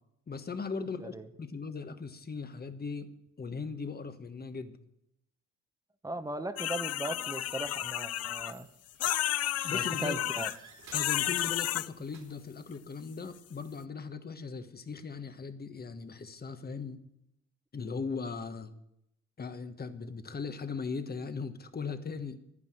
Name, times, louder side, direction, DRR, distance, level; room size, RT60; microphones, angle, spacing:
voice 1, 0.3-3.1 3.4-4.8 9.6-10.2 10.9-17.0 17.7-18.7 19.4-22.4, left 5 dB, 30° left, 9 dB, 1.3 m, -38 dB
voice 2, 6.0-8.7 9.7-10.5, right 1 dB, 10° right, 9 dB, 1.2 m, -38 dB
sound 1, 6.6-8.5 9.0-10.6 10.9-11.9, left 13 dB, 55° left, 0.5 m, -32 dB
sound 2, 7.9-8.2 8.5-12.6, right 5 dB, 65° right, 3.3 m, -55 dB
11.0 x 9.9 x 7.8 m, 0.80 s
cardioid pair, 90°, 30 cm